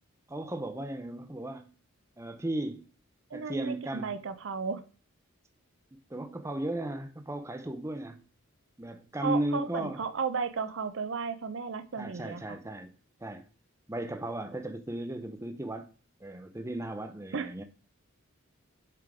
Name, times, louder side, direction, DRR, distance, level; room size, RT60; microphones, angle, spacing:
voice 1, 0.3-1.7 2.2-2.8 3.3-4.1 5.9-8.2 8.8-10.0 12.0-12.9 13.2-13.4 13.9-15.9 16.2-17.6, right 1 dB, 15° right, 0.5 m, -35 dB
voice 2, 3.3-4.8 9.2-12.6 17.3-17.5, right 5 dB, 60° right, 0.5 m, -34 dB
7.5 x 3.7 x 4.8 m
head